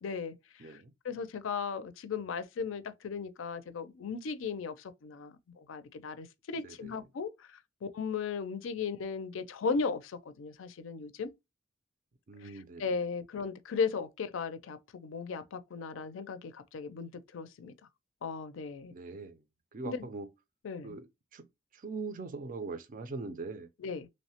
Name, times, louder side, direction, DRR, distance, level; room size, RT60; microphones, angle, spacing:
voice 1, 0.0-0.8 1.0-11.3 12.4-17.7 18.2-18.9 19.8-20.1 20.6-21.0 23.8-24.1, left 5 dB, 70° left, 0.4 m, -37 dB
voice 2, 0.6-0.9 6.6-7.0 12.3-12.8 18.9-19.3 19.7-20.3 20.8-21.1 21.3-21.4 21.7-23.7, right 3 dB, 40° right, 0.4 m, -41 dB
3.1 x 2.0 x 2.8 m
head